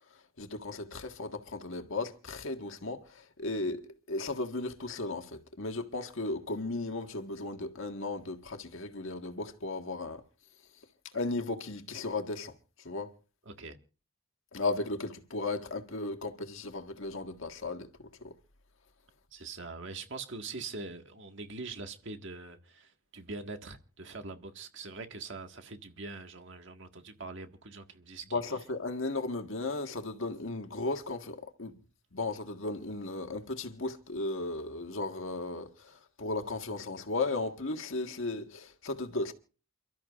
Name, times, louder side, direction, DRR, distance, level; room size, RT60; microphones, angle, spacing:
voice 1, 0.1-10.2 11.1-13.1 14.5-18.3 28.3-31.8 32.1-39.3, left 2 dB, 65° left, 1.7 m, -36 dB
voice 2, 13.4-13.8 19.3-28.4, right 3 dB, 55° right, 1.8 m, -43 dB
29.0 x 13.0 x 2.5 m
head